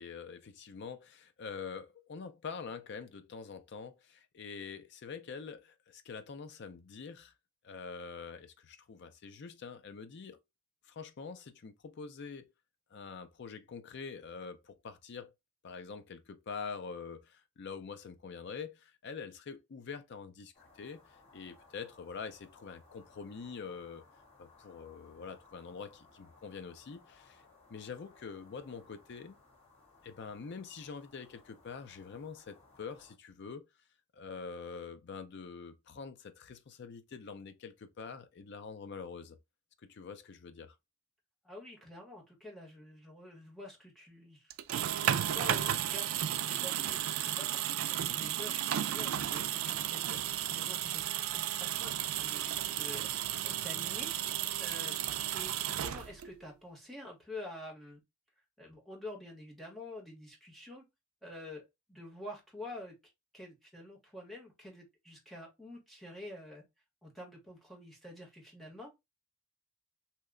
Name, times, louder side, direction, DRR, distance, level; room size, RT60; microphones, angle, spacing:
voice 1, 0.0-7.3 7.6-10.4 10.9-12.5 12.9-15.3 15.6-24.0 24.4-27.4 27.7-29.4 30.0-33.7 34.1-39.4 39.8-40.7, left 5 dB, 55° left, 0.5 m, -45 dB
sound 1, 20.5-33.2, left 3 dB, 30° left, 1.7 m, -62 dB
voice 2, 41.4-44.5 44.8-58.0 58.6-60.8 61.2-63.0 63.3-66.6 67.0-68.9, left 1 dB, ahead, 1.1 m, -48 dB
sound 2, 44.5-56.4, right 11 dB, 80° right, 0.3 m, -33 dB
2.8 x 2.1 x 3.6 m
head